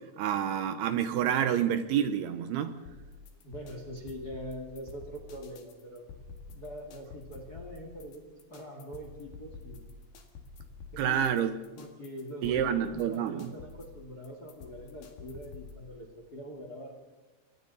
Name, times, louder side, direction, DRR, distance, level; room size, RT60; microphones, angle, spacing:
voice 1, 0.2-2.8 11.0-11.5 12.4-13.5, right 9 dB, 75° right, 10 dB, 2.6 m, -28 dB
sound 1, 2.9-15.8, left 4 dB, 65° left, 3.9 m, -49 dB
voice 2, 3.4-6.2 6.5-9.8 10.9-11.4 11.7-16.9, equal, 35° left, 2 dB, 1.8 m, -43 dB
29.5 x 24.5 x 4.1 m, 1.2 s
omnidirectional pair, 5.1 m